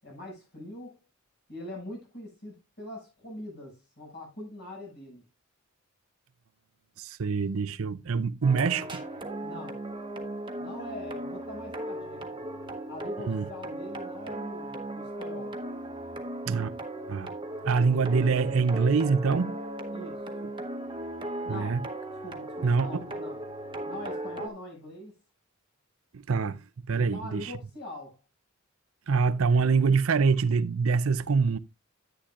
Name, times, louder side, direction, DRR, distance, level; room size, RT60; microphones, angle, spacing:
voice 1, 0.0-1.0 1.5-5.2 9.4-9.8 10.6-12.2 12.9-15.6 19.9-20.2 21.4-21.8 22.2-23.4 23.9-25.2 26.9-28.2, left 1 dB, 50° left, 6.9 m, -42 dB
voice 2, 7.0-9.0 13.2-13.5 16.5-16.7 17.1-17.3 17.6-19.5 21.5-21.8 22.6-23.1 26.1-26.6 26.9-27.5 29.1-31.6, right 5 dB, 75° right, 0.6 m, -25 dB
sound 1, 8.4-24.5, right 1 dB, 25° right, 1.2 m, -37 dB
10.0 x 9.9 x 2.5 m
head